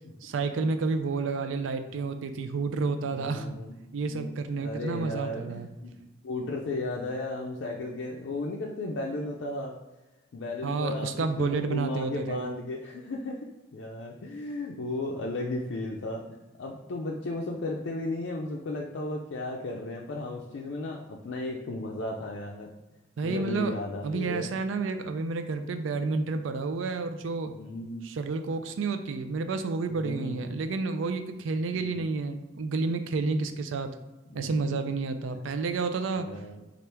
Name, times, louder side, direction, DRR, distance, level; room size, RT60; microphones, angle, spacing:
voice 1, 0.2-3.5 3.9-5.7 10.6-12.5 23.2-23.7 24.0-27.5 28.0-33.9 34.3-36.3, right 4 dB, 90° right, 9 dB, 0.4 m, -30 dB
voice 2, 3.0-3.8 4.0-4.3 4.6-9.7 10.3-13.4 13.7-22.7 23.2-24.5 27.5-28.0 29.9-30.5 31.7-32.0 34.3-34.6 36.2-36.7, left 2 dB, 75° left, -2 dB, 0.4 m, -35 dB
3.3 x 2.4 x 4.4 m, 1.0 s
head